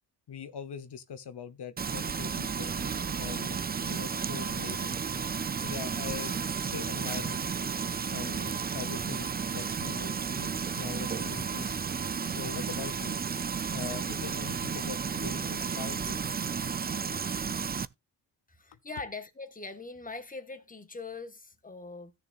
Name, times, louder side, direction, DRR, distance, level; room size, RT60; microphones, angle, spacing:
voice 1, 0.3-2.7 3.2-4.9 5.6-6.3 6.6-7.4 8.1-11.7 12.2-13.2 13.7-16.2 18.7-18.8, left 8 dB, 80° left, 1.1 m, -42 dB
Frying (food), 1.8-17.9, right 6 dB, 25° right, 0.4 m, -33 dB
sound 1, 2.8-5.5, right 5 dB, 45° right, 1.4 m, -48 dB
voice 2, 18.5-22.1, left 3 dB, 20° left, 1.5 m, -42 dB
16.5 x 6.6 x 2.5 m
wide cardioid pair, 110°, 40 cm